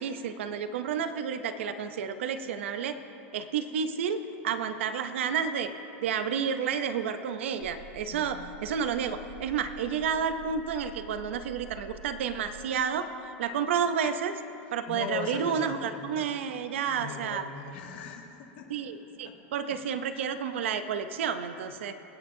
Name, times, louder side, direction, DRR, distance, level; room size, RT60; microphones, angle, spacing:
voice 1, 0.0-3.0 3.3-5.7 6.0-14.3 14.7-17.4 18.7-21.9, right 7 dB, 90° right, 10 dB, 0.6 m, -31 dB
sound 1, 7.6-12.7, right 4 dB, 55° right, 1.1 m, -48 dB
voice 2, 14.9-16.3 16.9-18.7 19.2-19.3 19.7-19.8, left 6 dB, 65° left, 1 dB, 1.9 m, -39 dB
24.5 x 8.8 x 2.7 m, 2.8 s
supercardioid pair, 135°, 6 cm